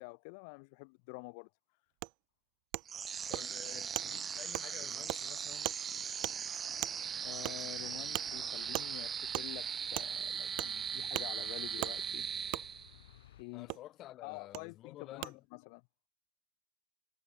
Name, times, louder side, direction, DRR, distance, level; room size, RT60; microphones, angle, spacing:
voice 1, 0.0-1.5 7.2-12.3 13.4-13.7 14.2-15.8, left 34 dB, 65° left, 2.7 m, -48 dB
Wood, 2.0-2.1 2.7-2.8 3.3-3.4 3.9-4.1 4.5-4.7 5.1-5.2 5.6-5.8 6.2-6.3 6.8-6.9 7.4-7.6 8.1-8.3 8.7-8.9 9.3-9.5 9.9-10.1 10.6-10.7 11.1-11.3 11.8-11.9 12.5-12.6 13.7-13.8 14.5-14.6 15.2-15.3, right 32 dB, 65° right, 2.2 m, -37 dB
sound 1, 2.9-13.1, right 7 dB, 30° right, 0.5 m, -39 dB
voice 2, 3.3-5.8 13.5-15.4, left 14 dB, 50° left, 5.0 m, -51 dB
sound 2, 6.9-13.4, left 13 dB, 85° left, 7.7 m, -60 dB
hypercardioid pair, 95°, 0 cm